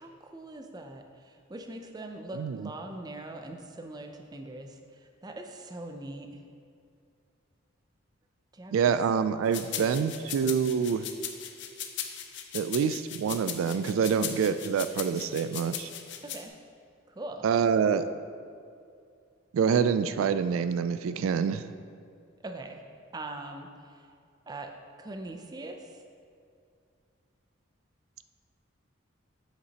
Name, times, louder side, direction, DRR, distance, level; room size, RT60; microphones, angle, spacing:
voice 1, 0.0-6.4 8.5-9.0 9.6-10.4 14.1-14.6 16.2-16.5 17.1-17.4 22.4-22.8 23.1-24.0 24.5-25.8, right 2 dB, 20° right, 4 dB, 0.4 m, -42 dB
voice 2, 2.3-2.7 8.7-11.1 12.5-15.9 17.4-18.0 19.5-21.7, right 7 dB, 90° right, 12 dB, 0.3 m, -26 dB
sound 1, 9.5-16.4, left 9 dB, 60° left, 0.6 m, -38 dB
8.1 x 8.0 x 2.9 m, 2.3 s
head